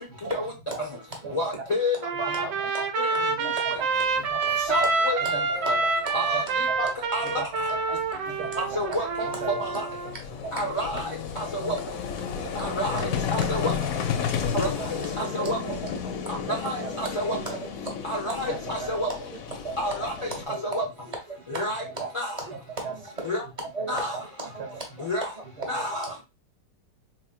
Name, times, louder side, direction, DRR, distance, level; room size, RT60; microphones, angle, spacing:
voice 1, 1.3-2.5 3.0-3.8 4.5-5.8 6.1-7.7 8.6-9.9 10.5-12.0 12.3-15.9 16.3-17.4 18.0-19.1 19.8-20.8 21.5-21.8 22.1-22.4 23.2-23.4 23.9-24.2 25.0-25.3 25.7-26.2, equal, 45° left, 0.4 m, -30 dB
Trumpet, 2.0-10.1, right 3 dB, 90° right, 1.3 m, -27 dB
voice 2, 2.4-2.9 3.3-3.6 4.2-4.6 5.2-5.9 6.3-6.4 6.8-6.9 7.4-7.5 8.3-9.0 9.3-9.7 10.9-11.0 12.8-13.0 14.4-15.1 15.5-15.7 16.5-17.1 17.5-17.6 18.5-18.9 19.5-20.1 20.5-20.6 22.0-22.1 22.5-23.0 23.8-24.2 24.6-24.7 25.6-25.8, right 5 dB, 75° right, 1.3 m, -37 dB
Vehicle, 4.3-4.4 4.6-4.8 6.8-6.9 7.1-20.4, left 7 dB, 70° left, 0.9 m, -33 dB
voice 3, 5.5-5.9 6.2-6.3 9.1-9.6 10.6-10.7 11.4-11.7 12.3-12.5 13.4-13.6 15.2-15.5 15.9-16.0 16.9-17.0 17.4-17.6 17.8-18.0 18.2-18.5 19.1-19.6 20.2-20.7 21.1-22.0 22.4-22.5 22.8-23.4 23.7-24.1 24.4-25.1 25.8-25.9, right 2 dB, 25° right, 1.0 m, -38 dB
4.2 x 3.1 x 2.3 m
omnidirectional pair, 1.8 m